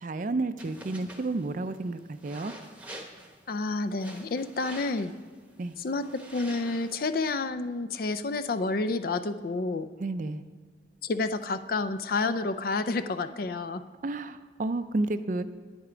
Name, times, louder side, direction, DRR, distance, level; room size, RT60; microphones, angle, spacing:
voice 1, 0.0-2.5 5.6-5.7 10.0-10.4 14.0-15.4, right 2 dB, 45° right, 12 dB, 0.4 m, -31 dB
sound 1, 0.6-7.1, right 1 dB, 10° right, 0.9 m, -48 dB
voice 2, 3.5-5.1 5.8-6.1 6.3-9.9 11.0-13.8, left 3 dB, 50° left, 11 dB, 0.4 m, -29 dB
10.5 x 8.9 x 5.0 m, 1.5 s
head